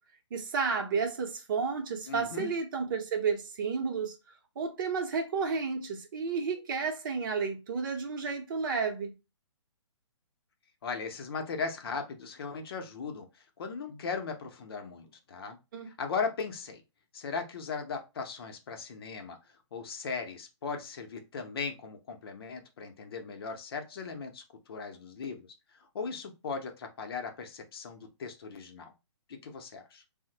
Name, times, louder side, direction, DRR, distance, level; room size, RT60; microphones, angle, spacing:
voice 1, 0.3-4.2 4.6-9.1 15.7-15.9, right 5 dB, 40° right, 0.7 m, -31 dB
voice 2, 2.1-2.5 10.8-15.6 15.9-16.8 17.1-19.4 19.7-25.4 25.7-28.9 29.3-30.0, left 5 dB, 50° left, 0.6 m, -38 dB
3.1 x 2.0 x 2.8 m
figure-of-eight pair, 135°, 16 cm